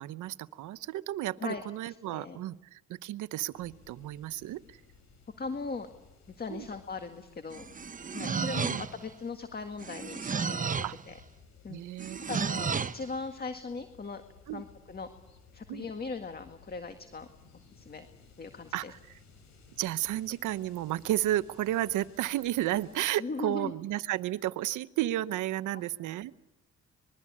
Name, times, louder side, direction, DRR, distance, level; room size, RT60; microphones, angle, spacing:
voice 1, 0.0-4.8 6.5-6.7 8.2-8.9 10.8-10.9 11.7-12.6 14.5-14.6 15.7-15.9 18.7-19.0 19.8-26.3, right 14 dB, 85° right, 15 dB, 0.9 m, -33 dB
sound 1, 3.5-23.0, left 4 dB, 65° left, 6.4 m, -58 dB
voice 2, 5.4-5.9 6.4-7.7 8.1-11.2 11.6-11.8 12.3-14.2 14.5-15.1 15.5-17.3 17.8-18.1 18.4-18.9 23.2-23.7 25.7-25.8, left 4 dB, 30° left, 7 dB, 2.0 m, -39 dB
sound 2, 7.5-9.1 9.8-11.0 12.0-13.0, right 6 dB, 25° right, 0.8 m, -33 dB
26.0 x 21.5 x 8.6 m, 0.97 s
cardioid pair, 90°, 30 cm